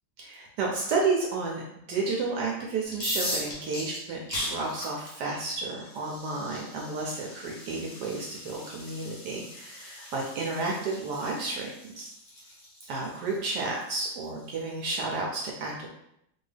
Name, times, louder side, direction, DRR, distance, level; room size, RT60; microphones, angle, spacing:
voice 1, 0.2-1.6 1.9-11.7 12.0-12.4 12.9-15.9, right 3 dB, 75° right, -2 dB, 1.0 m, -31 dB
sound 1, 2.9-14.6, left 1 dB, 55° left, 0.6 m, -39 dB
2.8 x 2.7 x 3.3 m, 0.79 s
omnidirectional pair, 2.2 m